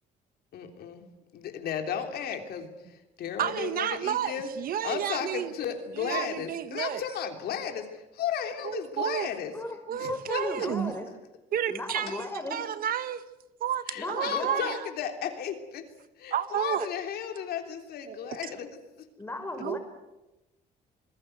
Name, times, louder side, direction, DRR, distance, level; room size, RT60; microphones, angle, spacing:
voice 1, 0.5-1.0 1.3-4.5 4.8-9.5 9.9-10.7 12.1-12.2 13.9-15.9 16.2-18.8, left 8 dB, 70° left, 5 dB, 3.3 m, -34 dB
voice 2, 3.4-5.5 6.0-7.0 8.6-9.3 9.9-10.9 11.5-12.2 12.5-13.2 13.6-14.8 16.3-16.9 18.1-18.2 19.6-19.8, right 10 dB, 60° right, 12 dB, 1.3 m, -31 dB
voice 3, 10.1-11.1 11.7-12.6 14.0-14.7 19.2-19.8, left 2 dB, 15° left, 6 dB, 5.4 m, -35 dB
27.0 x 20.0 x 8.0 m, 0.99 s
cardioid pair, 110°, 17 cm